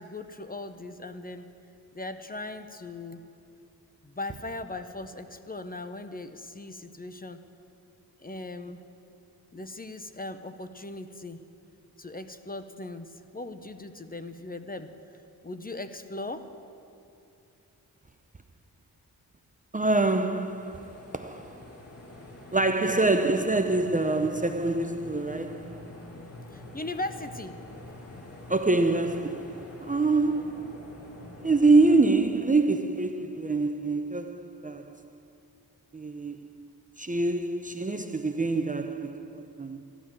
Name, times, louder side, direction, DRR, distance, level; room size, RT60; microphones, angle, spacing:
voice 1, 0.0-1.5 1.9-3.2 4.0-7.4 8.2-8.8 9.5-11.5 12.0-14.9 15.4-16.5 26.5-27.6, left 2 dB, 25° left, 0.8 m, -38 dB
voice 2, 19.7-21.7 22.5-25.9 28.5-31.1 31.4-35.0 35.9-36.7 37.0-39.8, right 3 dB, 20° right, 0.6 m, -26 dB
sound 1, 20.1-32.0, left 1 dB, 40° left, 2.8 m, -46 dB
13.0 x 11.0 x 7.5 m
cardioid pair, 60°, 38 cm